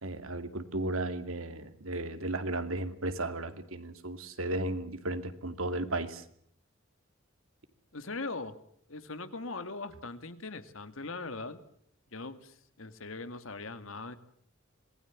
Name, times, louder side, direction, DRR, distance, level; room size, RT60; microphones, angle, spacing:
voice 1, 0.0-6.2, right 2 dB, 90° right, 9 dB, 2.6 m, -35 dB
voice 2, 7.9-8.6 8.9-11.6 12.1-14.2, left 3 dB, 75° left, 10 dB, 2.2 m, -40 dB
26.5 x 20.0 x 7.4 m, 0.66 s
head